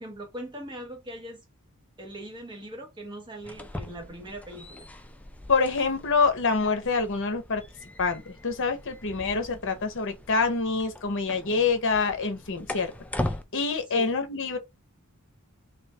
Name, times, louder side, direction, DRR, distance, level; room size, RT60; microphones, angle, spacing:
voice 1, 0.0-1.4 2.0-4.9 13.9-14.1, right 1 dB, 20° right, 1.0 m, -40 dB
sound 1, 3.4-13.4, left 1 dB, 5° left, 0.3 m, -40 dB
voice 2, 5.5-7.6 8.0-12.9 13.5-14.6, left 4 dB, 60° left, 0.8 m, -26 dB
3.2 x 2.7 x 3.3 m
head